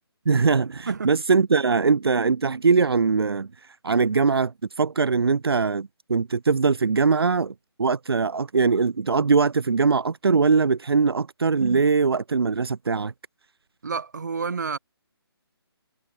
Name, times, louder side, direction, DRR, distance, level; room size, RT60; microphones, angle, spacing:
voice 1, 0.3-13.1, right 4 dB, 70° right, 1.1 m, -21 dB
voice 2, 13.8-14.8, right 5 dB, 45° right, 2.0 m, -29 dB
hypercardioid pair, 180°, 13 cm